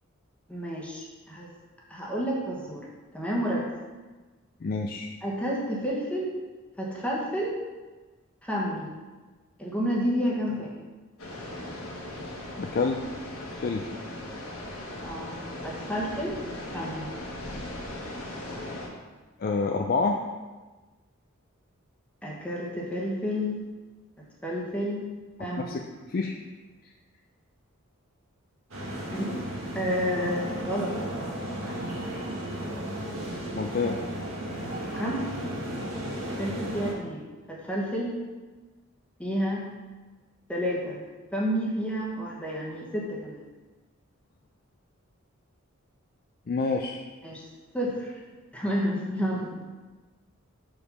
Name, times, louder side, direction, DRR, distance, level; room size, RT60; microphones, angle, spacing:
voice 1, 0.5-1.5 1.9-2.9 3.1-3.7 5.2-6.3 6.8-7.5 8.4-8.9 9.6-10.7 15.0-15.3 15.6-16.4 16.7-17.1 22.2-23.6 24.4-25.1 25.4-25.8 29.1-29.4 29.7-30.9 34.9-35.2 36.4-38.2 39.2-39.7 40.5-41.0 41.3-43.4 47.2-47.4 47.7-48.2 48.5-49.5, equal, 5° left, -4 dB, 1.2 m, -30 dB
voice 2, 4.6-5.1 12.6-13.0 13.6-14.0 19.4-20.2 25.6-25.8 26.1-26.4 33.6-34.0 46.5-47.0, left 4 dB, 45° left, 2 dB, 0.4 m, -27 dB
sound 1, 11.2-18.9, left 1 dB, 85° left, 1.4 m, -38 dB
sound 2, 28.7-36.9, right 1 dB, 75° right, 1.7 m, -34 dB
5.2 x 4.9 x 5.5 m, 1.3 s
head